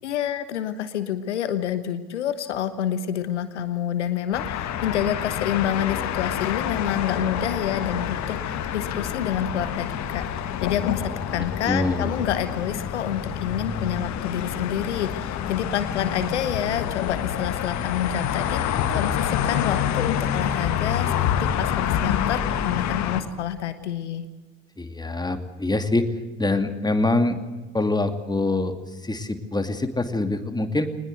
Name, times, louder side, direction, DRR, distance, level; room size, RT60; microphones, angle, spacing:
voice 1, 0.0-21.1 21.4-24.3, left 9 dB, 80° left, 12 dB, 1.2 m, -28 dB
sound 1, 4.3-23.2, left 9 dB, 55° left, 2.0 m, -27 dB
voice 2, 11.7-12.1 24.8-26.1 26.4-27.4 27.7-30.9, left 2 dB, 10° left, 8 dB, 2.6 m, -24 dB
21.5 x 20.5 x 8.0 m, 1.2 s
figure-of-eight pair, 55°, 34 cm